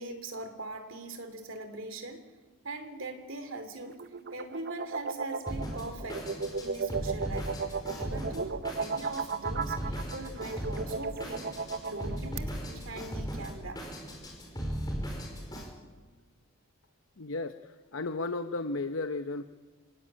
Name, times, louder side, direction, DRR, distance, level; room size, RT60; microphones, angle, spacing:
voice 1, 0.0-2.2 2.6-7.6 7.9-13.9, right 2 dB, 60° right, 8 dB, 3.0 m, -41 dB
sound 1, 3.9-12.4, right 4 dB, 45° right, 0.7 m, -35 dB
Drum kit, 5.5-15.7, equal, 20° left, 4.6 m, -38 dB
voice 2, 17.2-19.4, left 3 dB, 65° left, 9 dB, 0.8 m, -34 dB
26.0 x 18.0 x 8.8 m, 1.4 s
head